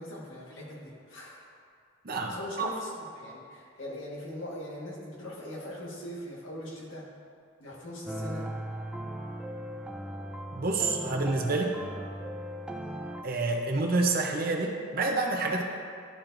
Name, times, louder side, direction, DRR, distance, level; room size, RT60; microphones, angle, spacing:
voice 1, 0.0-1.4 2.3-7.0 7.6-8.5, left 1 dB, 85° left, -4 dB, 1.5 m, -41 dB
voice 2, 2.0-2.7 10.5-11.8 13.2-15.6, right 3 dB, 50° right, 1 dB, 0.7 m, -28 dB
sound 1, 8.1-13.2, right 1 dB, 5° right, 0.4 m, -38 dB
12.0 x 4.5 x 2.6 m, 2.3 s
head